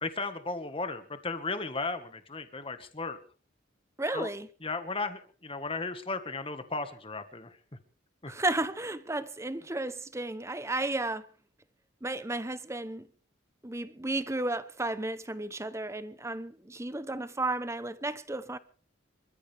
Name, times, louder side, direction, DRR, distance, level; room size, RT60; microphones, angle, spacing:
voice 1, 0.0-3.2 4.1-4.3 4.6-7.5 8.2-8.3, left 3 dB, 30° left, 1.6 m, -35 dB
voice 2, 4.0-4.5 8.3-11.3 12.0-13.1 13.6-18.6, right 2 dB, 15° right, 0.9 m, -33 dB
27.0 x 14.0 x 3.5 m
head